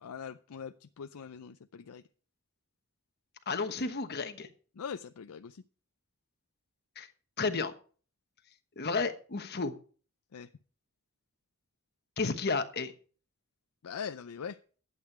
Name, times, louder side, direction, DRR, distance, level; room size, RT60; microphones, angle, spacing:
voice 1, 0.0-2.0 4.8-5.6 10.3-10.5 13.8-14.6, left 7 dB, 90° left, 10 dB, 0.5 m, -42 dB
voice 2, 3.5-4.5 7.0-7.1 7.4-7.7 8.8-9.7 12.2-12.9, left 4 dB, 50° left, 8 dB, 1.2 m, -32 dB
12.0 x 8.4 x 4.8 m, 0.41 s
head